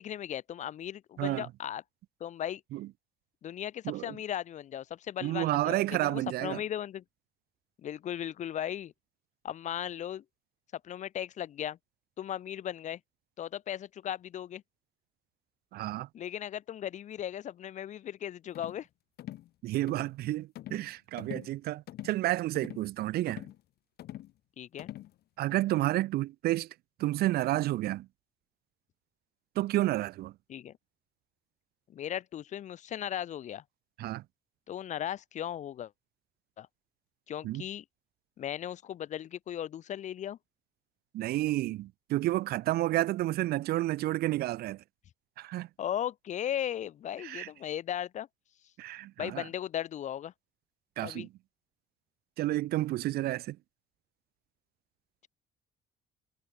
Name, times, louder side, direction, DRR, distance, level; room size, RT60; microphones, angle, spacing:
voice 1, 0.0-1.8 2.2-2.6 3.4-7.0 7.8-8.9 9.4-10.2 10.7-11.8 12.2-13.0 13.4-14.6 16.1-18.9 24.6-24.9 30.5-30.7 31.9-33.6 34.7-35.9 36.6-36.7 37.3-37.8 38.4-40.4 45.8-48.3 49.2-50.3 51.0-51.3, left 10 dB, 45° left, 0.5 m, -37 dB
voice 2, 3.8-4.2 5.2-6.6 15.7-16.1 19.6-23.4 25.4-26.7 27.0-28.1 29.6-30.3 34.0-34.2 37.4-37.6 41.1-44.8 45.4-45.7 47.2-47.5 48.8-49.4 51.0-51.3 52.4-53.6, right 16 dB, 70° right, 0.5 m, -30 dB
sound 1, 18.5-18.8 19.2-19.5 19.9-20.1 20.6-20.9 21.2-21.5 21.9-22.2 22.5-22.9 23.3-23.6 24.0-24.3 24.8-25.1, left 14 dB, 70° left, 2.0 m, -44 dB
cardioid pair, 110°, 17 cm